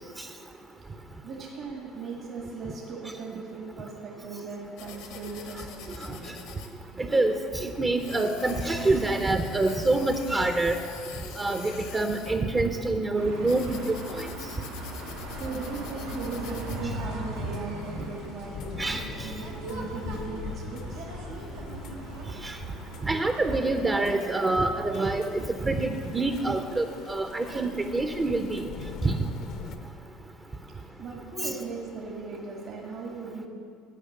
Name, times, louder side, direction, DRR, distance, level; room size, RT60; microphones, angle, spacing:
voice 1, 1.2-6.5 15.0-21.1 30.9-33.5, right 4 dB, 60° right, -2 dB, 1.7 m, -38 dB
sound 1, 4.8-16.8, left 7 dB, 75° left, 1.1 m, -44 dB
voice 2, 7.0-10.7 11.4-14.3 18.8-19.3 22.4-22.6 23.0-28.6 29.0-29.2 31.4-31.5, right 2 dB, 25° right, 6 dB, 0.6 m, -26 dB
sound 2, 13.2-23.6, right 1 dB, 90° right, 1.5 m, -39 dB
sound 3, 15.0-29.8, left 6 dB, 60° left, 0.7 m, -43 dB
10.0 x 5.1 x 7.5 m, 2.4 s
supercardioid pair, 85°, 0 cm